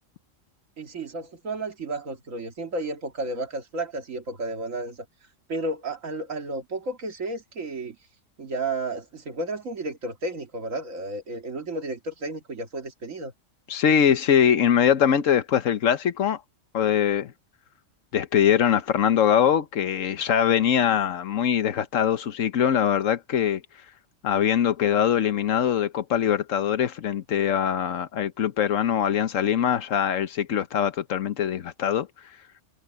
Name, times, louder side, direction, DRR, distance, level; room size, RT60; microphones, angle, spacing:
voice 1, 0.8-5.1 5.5-8.0 8.4-13.3, right 2 dB, 90° right, 2.4 m, -32 dB
voice 2, 13.7-16.4 16.7-17.3 18.1-23.6 24.2-32.1, left 9 dB, 80° left, 1.3 m, -22 dB
omnidirectional pair, 1.3 m